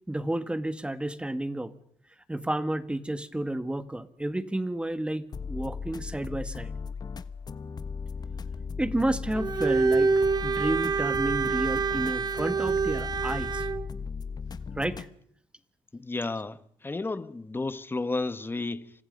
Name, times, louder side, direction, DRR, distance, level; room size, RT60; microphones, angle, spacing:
voice 1, 0.1-1.7 2.3-6.7 8.8-10.1 10.4-13.7 14.7-15.1, right 1 dB, 10° right, 1.8 m, -31 dB
sound 1, 5.3-15.1, left 5 dB, 40° left, 1.2 m, -37 dB
Bowed string instrument, 9.3-13.8, right 4 dB, 40° right, 1.2 m, -26 dB
voice 2, 15.9-18.9, left 3 dB, 20° left, 1.4 m, -32 dB
29.5 x 25.5 x 5.4 m
cardioid pair, 85°, 11 cm